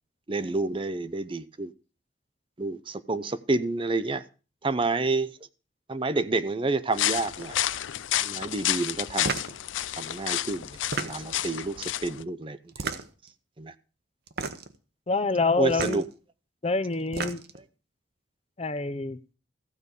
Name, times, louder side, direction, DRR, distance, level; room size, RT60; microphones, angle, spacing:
voice 1, 0.3-1.7 2.6-4.2 4.6-5.3 5.9-7.6 8.2-9.4 10.0-12.6 13.6-13.7 15.6-16.1, right 3 dB, 25° right, 0.6 m, -29 dB
sound 1, 6.9-12.2, left 12 dB, 85° left, 0.5 m, -30 dB
sound 2, 9.2-9.6 10.7-11.4 12.7-13.3 14.3-14.8 15.7-16.0 16.9-17.6, right 4 dB, 55° right, 1.0 m, -32 dB
voice 2, 15.1-16.0 16.6-17.4 18.6-19.2, left 3 dB, 35° left, 0.7 m, -26 dB
15.0 x 5.3 x 8.2 m
head